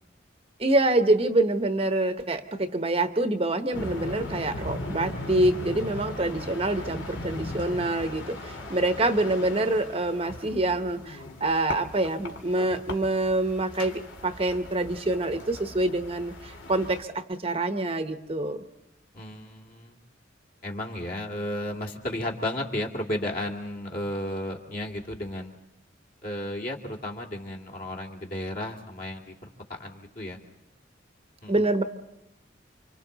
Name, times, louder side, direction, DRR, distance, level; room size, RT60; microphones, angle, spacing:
voice 1, 0.6-18.6 31.5-31.8, right 2 dB, 30° right, 9 dB, 0.9 m, -26 dB
sound 1, 3.7-17.0, left 2 dB, 75° left, 2.5 m, -38 dB
voice 2, 19.1-20.0 20.6-25.5 26.2-30.4 31.4-31.6, left 1 dB, 45° left, 1 dB, 2.6 m, -33 dB
29.5 x 25.5 x 4.0 m, 0.91 s
head